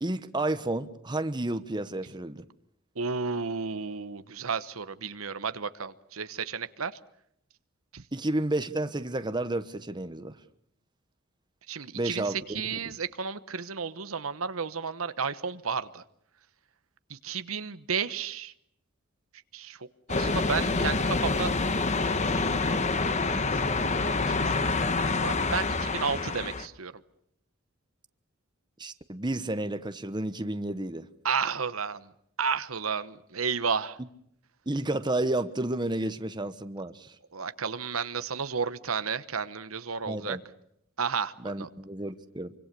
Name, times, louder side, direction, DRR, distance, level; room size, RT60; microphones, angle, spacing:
voice 1, 0.0-2.4 8.1-10.4 11.9-13.0 28.8-31.1 34.7-37.2 40.1-40.4 41.4-42.5, right 2 dB, 20° right, 1.1 m, -31 dB
voice 2, 3.0-6.9 7.9-8.0 11.7-16.0 17.1-18.5 19.5-21.5 22.0-23.2 23.5-23.6 23.9-26.9 31.2-32.1 32.4-34.0 37.3-40.4 41.0-41.7, right 5 dB, 85° right, 1.1 m, -32 dB
sound 1, 20.1-26.7, left 3 dB, 35° left, 1.2 m, -27 dB
26.0 x 25.0 x 6.9 m
head